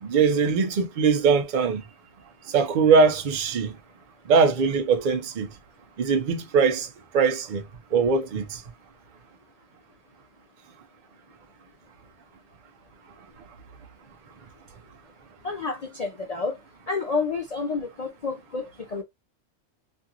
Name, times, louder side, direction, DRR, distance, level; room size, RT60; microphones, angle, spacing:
voice 1, 0.0-1.8 2.5-3.7 4.3-5.5 6.0-6.9 7.1-7.6 7.9-8.6, right 5 dB, 50° right, 0.6 m, -21 dB
voice 2, 15.4-16.6 16.9-19.0, left 4 dB, 60° left, 0.4 m, -29 dB
2.6 x 2.4 x 2.7 m
omnidirectional pair, 1.3 m